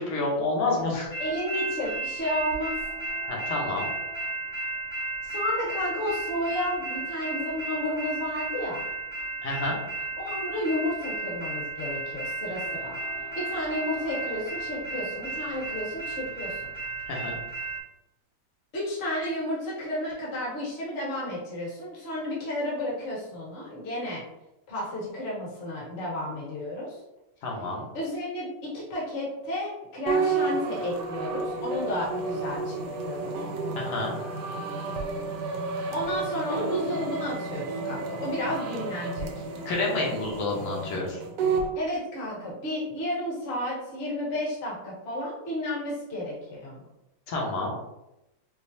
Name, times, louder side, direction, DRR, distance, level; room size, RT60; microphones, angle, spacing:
voice 1, 0.0-1.1 3.3-3.9 9.4-9.7 17.1-17.4 27.4-27.8 33.8-34.1 39.6-41.2 47.3-47.7, left 2 dB, 80° left, -3 dB, 1.7 m, -29 dB
sound 1, 1.1-17.8, right 2 dB, 65° left, 0.7 m, -34 dB
voice 2, 1.2-2.8 5.2-8.8 10.2-13.0 13.3-16.7 18.7-24.2 24.7-27.0 27.9-33.5 35.6-39.5 41.7-46.8, left 1 dB, 40° left, -6 dB, 1.1 m, -32 dB
sound 2, 30.1-41.7, right 4 dB, 75° right, 1.0 m, -31 dB
5.0 x 2.0 x 2.7 m, 0.90 s
omnidirectional pair, 2.4 m